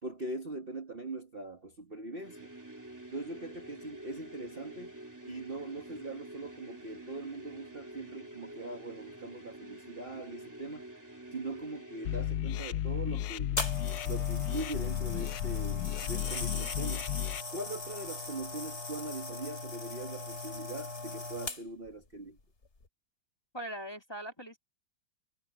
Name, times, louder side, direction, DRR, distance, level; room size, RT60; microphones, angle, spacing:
voice 1, 0.0-2.5 3.1-4.9 5.3-10.8 11.3-13.6 14.0-17.1 17.5-22.4, right 2 dB, 30° right, 1.5 m, -41 dB
sound 1, 2.1-12.5, right 1 dB, 10° right, 2.5 m, -48 dB
sound 2, 12.0-17.4, left 12 dB, 75° left, 1.3 m, -34 dB
sound 3, 13.6-21.9 22.6-22.8, left 3 dB, 35° left, 2.9 m, -39 dB
voice 2, 23.5-24.6, right 1 dB, 15° left, 2.3 m, -40 dB
omnidirectional pair, 2.0 m